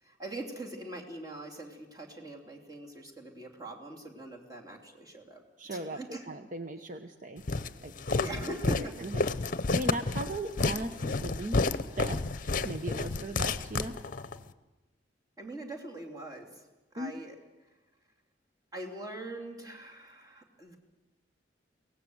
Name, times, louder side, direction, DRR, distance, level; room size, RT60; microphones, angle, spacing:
voice 1, 0.0-5.4 5.7-6.3 8.1-9.1 15.4-16.7 16.9-17.4 18.7-20.8, right 1 dB, 20° right, 0 dB, 3.1 m, -42 dB
voice 2, 5.6-6.0 6.3-7.4 7.8-9.3 9.7-11.6 12.0-12.2 12.6-13.9 17.0-17.1, right 1 dB, 45° right, 7 dB, 0.9 m, -38 dB
Walk footsteps, 7.5-14.4, left 3 dB, 50° left, 0.8 m, -30 dB
23.0 x 18.0 x 7.9 m, 1.1 s
head